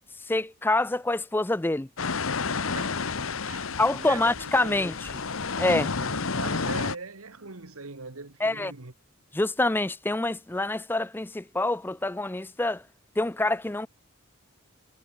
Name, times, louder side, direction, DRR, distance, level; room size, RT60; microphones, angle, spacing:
voice 1, 0.3-1.9 3.8-5.1 5.6-5.9 8.4-8.7 9.3-12.8 13.2-13.9, left 2 dB, 10° left, 0.4 m, -26 dB
sound 1, 2.0-6.9, left 4 dB, 75° left, 1.1 m, -30 dB
voice 2, 2.7-4.9 6.0-8.9, right 4 dB, 85° right, 1.7 m, -41 dB
head